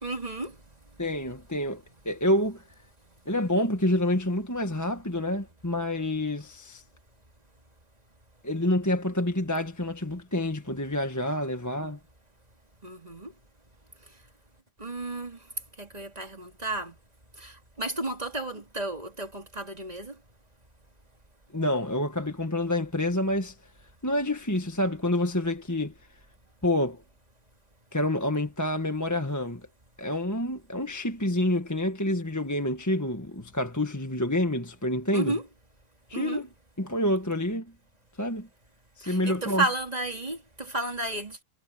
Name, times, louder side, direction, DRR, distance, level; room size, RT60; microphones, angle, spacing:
voice 1, 0.0-1.0 12.8-13.3 14.8-15.5 15.8-17.0 17.3-20.2 35.1-35.4 36.1-36.4 39.0-41.4, right 2 dB, 20° right, 3.0 m, -33 dB
voice 2, 1.0-2.6 3.2-6.8 8.4-12.0 21.5-23.6 24.0-25.9 26.6-27.0 27.9-29.7 30.0-35.4 36.1-36.5 36.8-37.7 38.2-38.5 39.0-39.6, left 1 dB, 10° left, 1.4 m, -28 dB
omnidirectional pair, 1.9 m